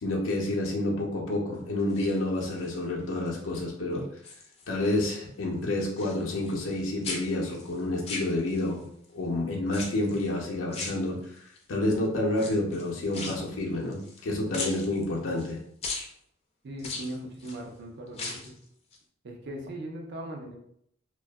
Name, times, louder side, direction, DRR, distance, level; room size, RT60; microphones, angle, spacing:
voice 1, 0.0-4.0 4.7-8.8 9.1-11.2 11.7-15.6, left 1 dB, 85° left, -2 dB, 0.5 m, -29 dB
sound 1, 1.8-2.8 3.2-3.6 3.9-5.0 5.2-6.8 7.0-8.8 9.7-10.3 10.7-11.6 12.3-14.2 14.5-15.5 15.8-16.1 16.8-17.6 18.1-18.6 18.9-19.0, left 3 dB, 30° left, 0.4 m, -38 dB
voice 2, 16.6-18.6 19.2-20.6, right 1 dB, 60° right, 1 dB, 0.5 m, -39 dB
2.6 x 2.3 x 2.2 m, 0.69 s
head